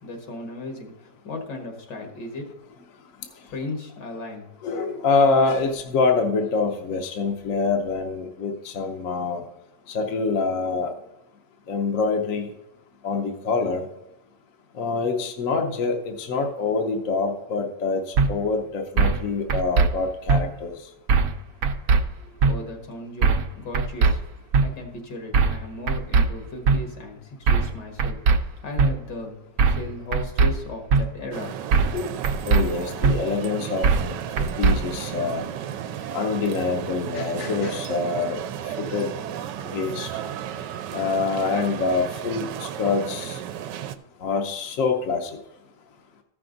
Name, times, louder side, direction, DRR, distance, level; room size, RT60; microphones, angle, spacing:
voice 1, 0.0-2.5 3.5-4.5 22.2-24.2 24.6-29.4 29.7-31.9, left 2 dB, 75° left, 2 dB, 2.2 m, -36 dB
voice 2, 4.6-9.4 9.9-10.9 11.7-12.5 13.0-13.9 14.8-18.0 18.3-20.7 31.9-32.1 32.4-34.1 34.6-35.4 36.1-38.4 38.8-39.1 39.6-40.1 40.9-43.4 44.2-45.3, left 4 dB, 55° left, 3 dB, 1.1 m, -25 dB
sound 1, 18.2-18.3 19.0-19.2 19.5-19.9 20.3-20.4 21.1-21.4 21.6-22.0 22.4-22.5 23.2-23.5 23.7-24.1 24.5-24.7 25.3-25.6 25.9-26.3 26.7-26.8 27.5-27.7 28.0-28.4 28.8-28.9 29.6-29.9 30.1-30.5 30.9-31.0 31.7-32.0 32.2-32.6 33.0-33.2 33.8-34.1 34.4-34.8, right 5 dB, 65° right, 1.0 m, -19 dB
sound 2, 31.3-43.9, right 10 dB, 90° right, 1.2 m, -34 dB
14.0 x 6.0 x 3.9 m, 0.89 s
omnidirectional pair, 1.9 m